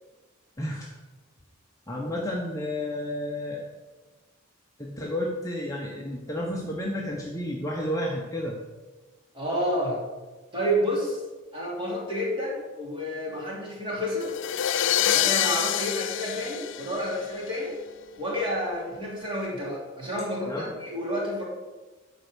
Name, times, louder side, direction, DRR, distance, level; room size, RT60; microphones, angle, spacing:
voice 1, 0.6-0.9 1.9-3.6 4.8-8.6 20.4-20.7, left 1 dB, 15° left, -2 dB, 1.0 m, -31 dB
voice 2, 9.3-10.0 10.5-11.2 11.5-14.3 15.1-17.8 18.2-21.4, equal, 25° right, -4 dB, 2.9 m, -29 dB
sound 1, 14.2-17.5, left 11 dB, 55° left, 0.3 m, -26 dB
11.5 x 4.6 x 6.9 m, 1.3 s
head